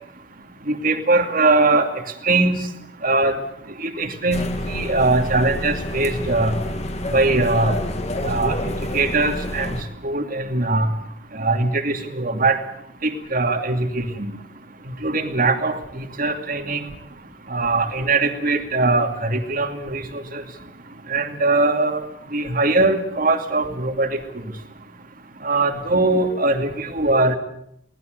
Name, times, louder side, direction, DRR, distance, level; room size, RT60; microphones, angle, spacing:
voice 1, 0.7-1.9 2.2-2.6 3.0-3.4 3.8-4.4 4.7-6.5 7.1-7.7 8.2-8.6 8.9-9.8 10.0-10.9 11.3-12.6 13.0-14.3 15.0-16.8 17.5-20.4 21.1-22.0 22.3-24.2 25.4-27.4, right 2 dB, 50° right, 6 dB, 2.6 m, -21 dB
sound 1, 4.3-9.8, left 1 dB, 35° left, 2.2 m, -28 dB
23.5 x 19.0 x 8.1 m, 0.72 s
head